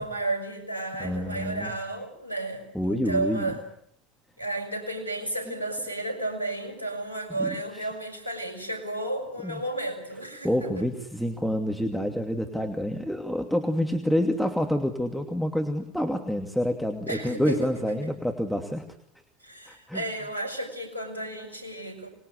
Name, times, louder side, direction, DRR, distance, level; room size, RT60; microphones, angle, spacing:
voice 1, 0.0-3.6 4.4-10.9 17.1-18.1 19.4-22.1, right 2 dB, 90° left, 7 dB, 6.0 m, -33 dB
voice 2, 1.0-1.7 2.7-3.5 7.4-7.5 9.4-9.6 10.4-18.8 19.7-20.0, equal, ahead, 4 dB, 2.6 m, -28 dB
26.0 x 21.5 x 8.3 m, 0.69 s
figure-of-eight pair, 70°, 0 cm